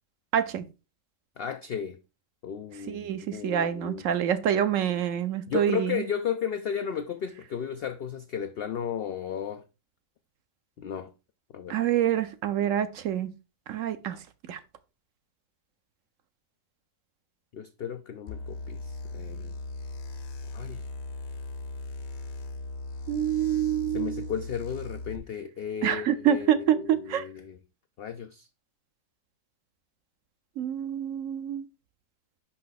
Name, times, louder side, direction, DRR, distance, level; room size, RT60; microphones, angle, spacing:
voice 1, 0.3-0.6 2.9-6.0 11.7-13.3 13.7-14.2 14.5-14.6 23.1-24.3 25.8-27.2 30.6-31.6, right 10 dB, 65° right, 0.9 m, -26 dB
voice 2, 1.4-2.0 2.4-4.1 5.5-9.6 10.8-11.1 11.5-11.8 17.5-19.6 20.5-20.8 23.9-27.6 28.0-28.5, left 8 dB, 80° left, 0.5 m, -34 dB
sound 1, 18.3-25.2, left 2 dB, 55° left, 0.9 m, -38 dB
5.7 x 5.5 x 4.0 m
omnidirectional pair, 1.6 m